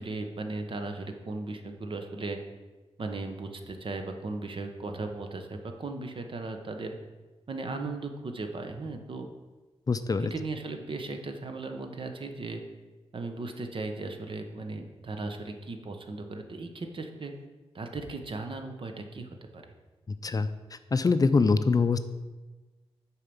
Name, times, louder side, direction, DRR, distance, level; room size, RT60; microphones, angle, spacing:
voice 1, 0.0-2.4 3.0-7.0 7.5-9.3 10.2-12.6 13.1-17.3 17.7-19.6, right 3 dB, 55° right, 5 dB, 1.0 m, -37 dB
voice 2, 9.9-10.3 20.2-20.5 20.9-22.0, left 4 dB, 35° left, 11 dB, 0.4 m, -23 dB
6.7 x 4.7 x 6.9 m, 1.2 s
cardioid pair, 80°, 11 cm